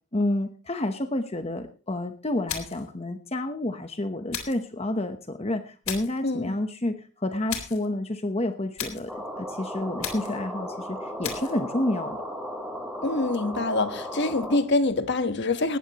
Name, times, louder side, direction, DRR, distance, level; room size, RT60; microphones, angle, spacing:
voice 1, 0.1-12.2, left 1 dB, 30° left, 8 dB, 1.0 m, -29 dB
sound 1, 2.5-2.9 4.3-4.7 5.8-6.2 7.5-7.9 8.8-9.1 10.0-10.4 11.2-11.6, left 8 dB, 80° left, 3.7 m, -35 dB
voice 2, 6.2-6.6 13.0-15.8, left 2 dB, 55° left, 10 dB, 1.4 m, -25 dB
sound 2, 9.1-14.6, equal, 5° right, 4.0 m, -35 dB
19.0 x 14.5 x 3.0 m, 0.35 s
head